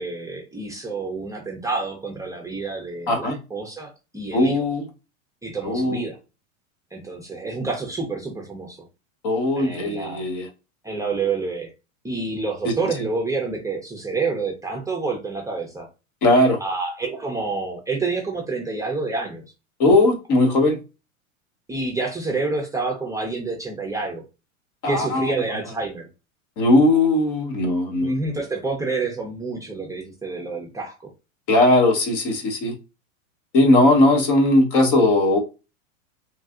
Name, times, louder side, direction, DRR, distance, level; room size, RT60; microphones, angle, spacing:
voice 1, 0.0-4.6 5.4-6.2 6.9-8.8 9.6-10.3 10.8-11.7 12.0-15.9 16.6-19.4 21.7-24.2 24.8-26.1 28.0-31.1, right 3 dB, 10° right, -1 dB, 0.6 m, -28 dB
voice 2, 3.1-3.4 4.3-4.8 5.6-6.0 9.2-10.5 16.2-16.6 19.8-20.8 24.8-25.3 26.6-28.2 31.5-32.7 33.5-35.4, left 2 dB, 45° left, 3 dB, 1.1 m, -18 dB
3.2 x 2.5 x 2.4 m, 0.30 s
hypercardioid pair, 115°, 41 cm